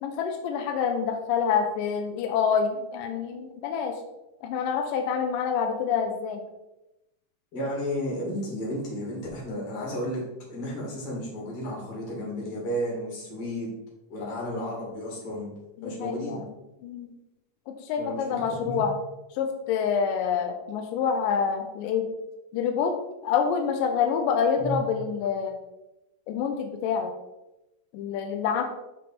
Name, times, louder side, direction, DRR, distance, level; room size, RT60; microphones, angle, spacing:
voice 1, 0.0-4.0 4.4-6.4 15.8-16.5 16.8-17.1 17.7-18.9 19.4-22.1 22.5-22.9 23.2-25.5 26.3-27.1 27.9-28.6, left 6 dB, 90° left, 5 dB, 2.3 m, -27 dB
voice 2, 7.5-10.2 10.5-13.7 14.1-15.5 15.8-16.4 18.0-18.9 24.6-24.8, equal, 45° left, -4 dB, 3.3 m, -32 dB
6.8 x 5.3 x 4.2 m, 0.95 s
omnidirectional pair, 3.8 m